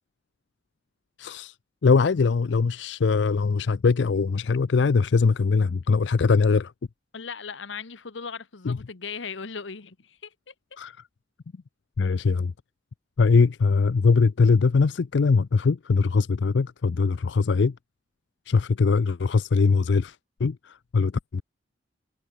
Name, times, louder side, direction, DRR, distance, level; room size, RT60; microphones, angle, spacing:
voice 1, 1.2-1.5 1.8-6.7 8.7-8.8 10.8-11.0 12.0-12.5 13.2-17.8 18.5-21.4, left 4 dB, 70° left, 0.5 m, -22 dB
voice 2, 7.1-10.5, left 5 dB, 85° left, 1.1 m, -38 dB
head